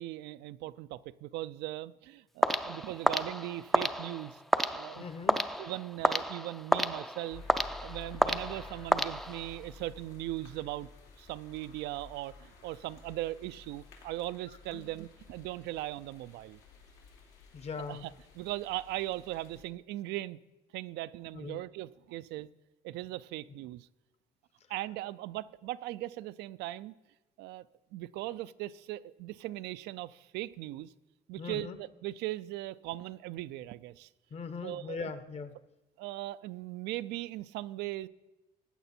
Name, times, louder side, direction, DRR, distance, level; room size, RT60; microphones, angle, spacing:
voice 1, 0.0-4.4 4.7-5.0 5.6-7.4 7.8-10.9 11.2-16.6 17.9-20.4 20.7-22.5 22.8-23.9 24.7-26.9 27.4-27.7 27.9-30.9 31.3-34.1 34.6-35.1 36.0-38.1, right 16 dB, 85° right, 15 dB, 0.4 m, -39 dB
sound 1, 2.4-9.7, equal, ahead, 0.4 m, -31 dB
voice 2, 5.0-5.4 14.7-14.8 17.5-18.1 21.3-21.6 31.4-31.8 34.3-35.6, left 5 dB, 40° left, 11 dB, 1.0 m, -40 dB
sound 2, 7.3-19.6, left 4 dB, 85° left, 2.7 m, -53 dB
15.0 x 9.2 x 4.3 m, 1.0 s
cardioid pair, 110°, 17 cm